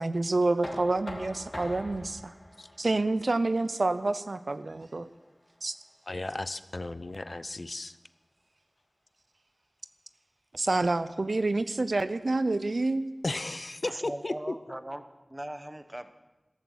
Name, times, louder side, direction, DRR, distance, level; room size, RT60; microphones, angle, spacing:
voice 1, 0.0-2.2 2.8-5.1 5.6-5.8 10.5-13.1, right 2 dB, 75° right, 13 dB, 0.6 m, -28 dB
Knock, 0.6-6.4, left 1 dB, 40° left, 2.0 m, -45 dB
voice 2, 6.1-7.9 13.2-14.5, left 2 dB, 60° left, 13 dB, 0.6 m, -34 dB
voice 3, 13.8-16.1, right 1 dB, 25° right, 10 dB, 1.0 m, -39 dB
14.0 x 13.0 x 6.3 m, 1.1 s
wide cardioid pair, 55°, 0 cm